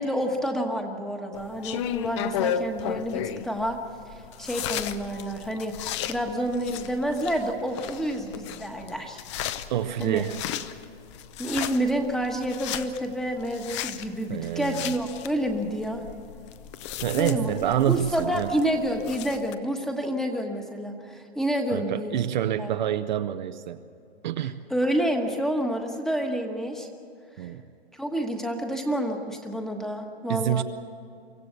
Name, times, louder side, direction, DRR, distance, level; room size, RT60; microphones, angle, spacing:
voice 1, 0.0-3.8 4.4-9.2 10.0-10.3 11.4-16.0 17.2-17.6 17.9-22.1 22.6-22.7 24.7-26.9 27.4-27.5 27.9-30.6, equal, ahead, 3 dB, 1.3 m, -29 dB
sound 1, 1.3-19.6, left 10 dB, 30° left, 0.7 m, -35 dB
voice 2, 9.7-10.4 14.3-14.9 17.0-18.5 21.7-23.8 24.2-24.6 27.4-27.6 30.3-30.6, right 10 dB, 45° right, 9 dB, 0.8 m, -27 dB
24.5 x 15.0 x 8.2 m, 2.5 s
hypercardioid pair, 155°, 32 cm